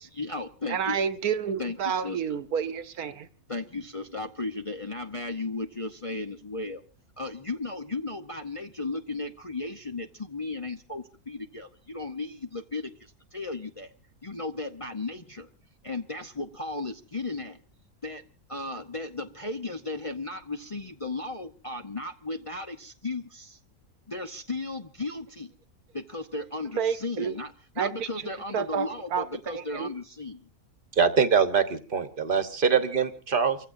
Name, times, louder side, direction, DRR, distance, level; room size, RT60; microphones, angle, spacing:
voice 1, 0.1-1.0 1.6-2.2 3.5-6.8 7.2-13.9 14.2-15.5 15.8-17.6 18.0-18.2 18.5-23.6 24.1-25.5 25.9-30.5, left 3 dB, 30° left, 0.7 m, -35 dB
voice 2, 0.7-3.3 26.8-27.3 27.8-28.1 28.5-29.9, right 7 dB, 85° right, 1.5 m, -29 dB
voice 3, 31.0-33.6, right 6 dB, 40° right, 1.3 m, -23 dB
29.5 x 15.5 x 2.7 m
omnidirectional pair, 1.5 m